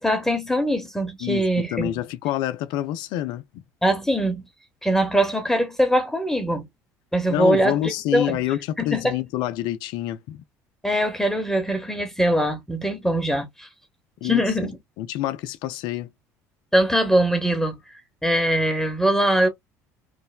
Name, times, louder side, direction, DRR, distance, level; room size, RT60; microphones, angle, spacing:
voice 1, 0.0-1.9 3.8-4.4 4.8-6.7 7.1-8.4 8.8-9.1 10.8-13.7 14.2-14.8 16.7-17.9 18.2-19.5, right 1 dB, 5° left, 1.0 m, -22 dB
voice 2, 1.2-3.6 7.3-10.4 14.2-14.7 15.0-16.1, left 13 dB, 65° left, 0.4 m, -27 dB
3.1 x 2.1 x 2.2 m
hypercardioid pair, 70°, 8 cm